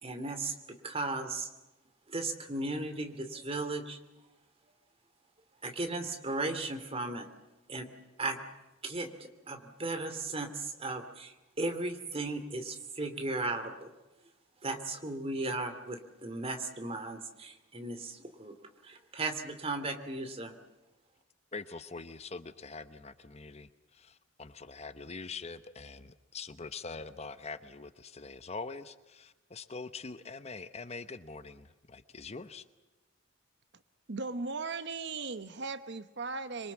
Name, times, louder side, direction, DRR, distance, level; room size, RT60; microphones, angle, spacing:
voice 1, 0.0-1.5 2.1-4.0 5.6-7.3 7.7-7.9 8.2-8.4 8.8-13.9 14.6-18.5 18.8-20.5, right 2 dB, 30° right, 7 dB, 2.6 m, -36 dB
voice 2, 21.5-32.6, left 4 dB, 35° left, 12 dB, 0.9 m, -44 dB
voice 3, 34.1-36.7, right 3 dB, 60° right, 11 dB, 1.0 m, -37 dB
26.0 x 23.5 x 7.3 m, 1.0 s
head